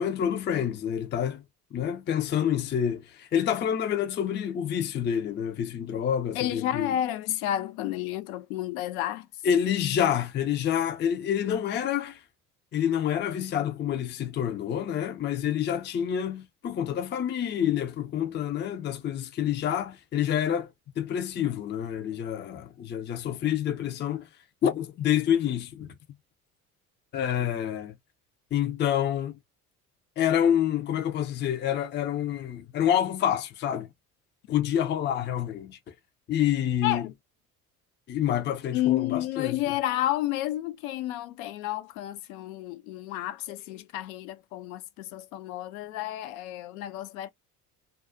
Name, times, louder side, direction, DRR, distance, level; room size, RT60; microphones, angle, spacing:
voice 1, 0.0-1.4 1.7-6.9 9.4-12.2 12.7-20.7 21.0-24.3 24.6-25.9 27.1-27.9 28.5-29.4 30.2-33.9 34.5-35.8 36.3-37.1 38.1-39.6, left 9 dB, 25° left, 0.5 m, -27 dB
voice 2, 6.3-9.3 36.8-37.1 38.7-47.3, left 13 dB, 70° left, 0.6 m, -31 dB
2.4 x 2.3 x 2.6 m
hypercardioid pair, 60°, 44 cm